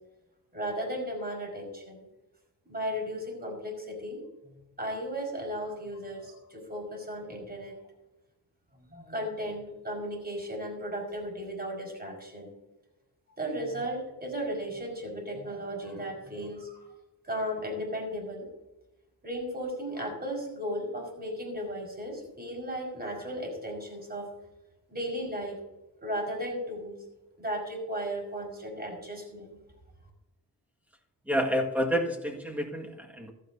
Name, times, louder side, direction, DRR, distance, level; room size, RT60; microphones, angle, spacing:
voice 1, 0.5-2.1 2.7-7.8 8.7-12.5 13.4-16.9 17.2-18.5 19.2-24.3 24.9-25.6 26.0-27.0 27.4-29.6, equal, 25° right, 1 dB, 5.1 m, -35 dB
voice 2, 31.3-33.3, equal, 5° right, 1 dB, 1.8 m, -29 dB
15.5 x 12.5 x 2.7 m, 0.99 s
wide cardioid pair, 105°, 40 cm